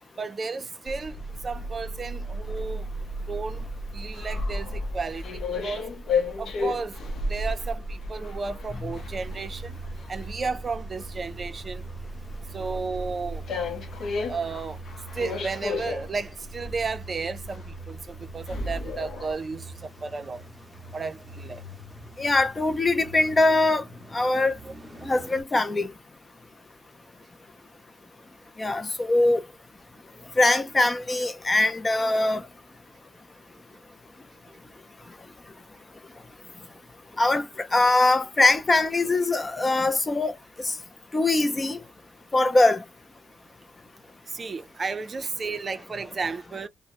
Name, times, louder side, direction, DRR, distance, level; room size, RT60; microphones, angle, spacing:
voice 1, 0.2-2.9 3.3-3.7 3.9-5.9 6.4-9.8 10.1-11.8 12.5-13.4 14.2-14.8 15.1-20.4 20.9-21.6 24.6-24.7 44.3-46.7, right 4 dB, 35° right, 0.5 m, -33 dB
sound 1, 0.9-19.3, left 2 dB, 60° left, 0.7 m, -33 dB
Car / Engine starting / Idling, 8.9-25.4, right 2 dB, 5° right, 0.8 m, -44 dB
voice 2, 22.2-23.8 24.1-24.5 25.0-25.9 28.6-29.4 30.4-32.4 37.2-40.4 40.6-40.7 41.1-41.8 42.3-42.8, left 2 dB, 25° left, 0.4 m, -22 dB
2.2 x 2.1 x 2.8 m
cardioid pair, 90°, 0 cm